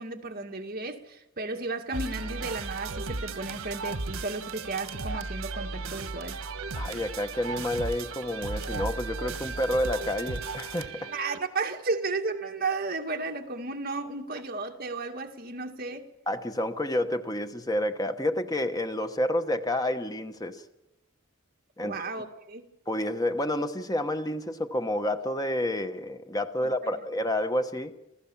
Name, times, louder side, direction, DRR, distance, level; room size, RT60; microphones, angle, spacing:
voice 1, 0.0-6.4 11.1-16.1 21.8-22.7 26.6-26.9, right 3 dB, 45° right, 2.2 m, -34 dB
sound 1, 1.9-11.4, right 3 dB, 80° right, 1.4 m, -35 dB
voice 2, 6.7-11.1 16.3-20.6 21.8-22.0 22.9-27.9, left 1 dB, 15° left, 1.0 m, -29 dB
28.0 x 16.0 x 7.2 m
head